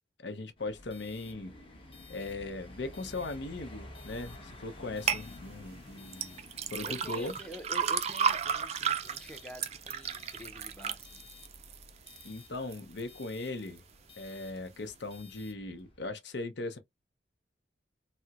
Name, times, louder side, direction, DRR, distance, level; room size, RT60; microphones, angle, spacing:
voice 1, 0.2-1.5 2.1-6.4 6.7-7.3 12.2-13.8 14.2-16.8, left 2 dB, 75° left, 0.7 m, -39 dB
sound 1, 0.6-16.1, left 2 dB, 30° left, 1.0 m, -52 dB
sound 2, 5.1-5.2 6.1-12.3 12.7-13.2 13.7-13.8, right 7 dB, 35° right, 0.3 m, -33 dB
voice 2, 6.8-11.3, equal, 5° left, 0.6 m, -47 dB
4.3 x 2.0 x 2.3 m
head